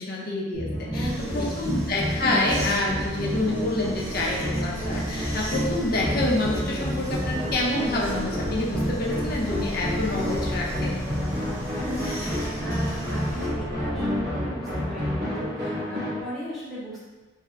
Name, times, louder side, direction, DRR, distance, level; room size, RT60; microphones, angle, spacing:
voice 1, 0.0-10.9, left 2 dB, 50° left, -3 dB, 0.6 m, -27 dB
sound 1, 0.5-16.2, equal, 50° right, 0.9 m, -29 dB
sound 2, 0.7-14.2, right 1 dB, 90° left, 1.0 m, -37 dB
voice 2, 0.9-1.9 11.7-17.1, equal, ahead, -8 dB, 0.7 m, -37 dB
sound 3, 1.0-13.5, equal, 90° right, 1.0 m, -42 dB
3.4 x 2.0 x 3.6 m, 1.3 s
head